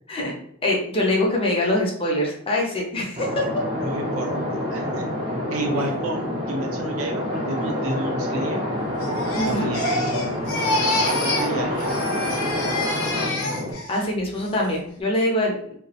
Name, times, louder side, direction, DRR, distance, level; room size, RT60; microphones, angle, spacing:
voice 1, 0.6-3.4 9.3-9.7 13.9-15.5, left 1 dB, 25° left, -1 dB, 0.5 m, -23 dB
sound 1, 3.2-13.7, left 1 dB, 25° right, 0.4 m, -27 dB
voice 2, 3.8-8.7 9.4-13.5, right 1 dB, 80° right, 2 dB, 0.5 m, -32 dB
Crying sobbing, 9.0-11.5 11.8-14.0 14.4-14.8, left 2 dB, 85° left, 0.6 m, -27 dB
2.2 x 2.0 x 2.7 m, 0.69 s
head